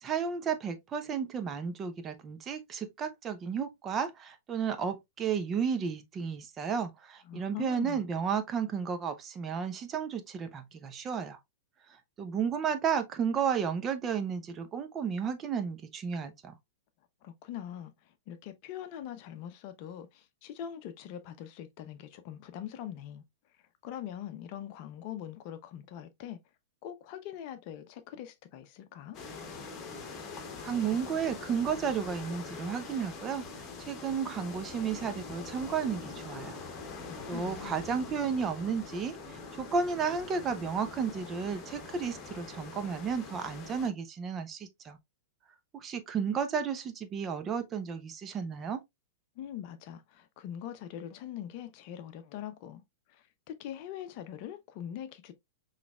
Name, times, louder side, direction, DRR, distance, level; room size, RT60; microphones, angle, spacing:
voice 1, 0.0-11.4 12.2-16.5 30.6-33.5 33.8-36.6 37.3-45.0 45.7-48.8, right 6 dB, 25° right, 0.7 m, -33 dB
voice 2, 7.3-8.0 17.2-23.2 23.8-26.4 26.8-29.2 37.0-37.8 49.4-52.8 53.1-55.3, left 10 dB, 45° left, 0.7 m, -43 dB
sound 1, 29.1-43.9, left 4 dB, 30° left, 1.3 m, -44 dB
5.9 x 3.2 x 2.3 m
figure-of-eight pair, 100°, 0 cm